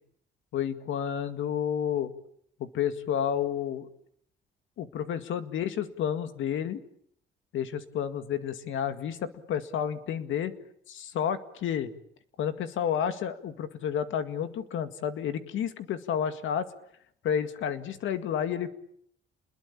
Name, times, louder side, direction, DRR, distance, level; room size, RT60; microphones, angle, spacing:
voice 1, 0.5-2.1 2.6-3.9 4.8-6.8 7.5-10.5 10.9-11.9 12.4-16.7 17.2-18.7, left 8 dB, 80° left, 10 dB, 2.1 m, -30 dB
29.0 x 21.5 x 8.6 m, 0.70 s
cardioid pair, 90°, 20 cm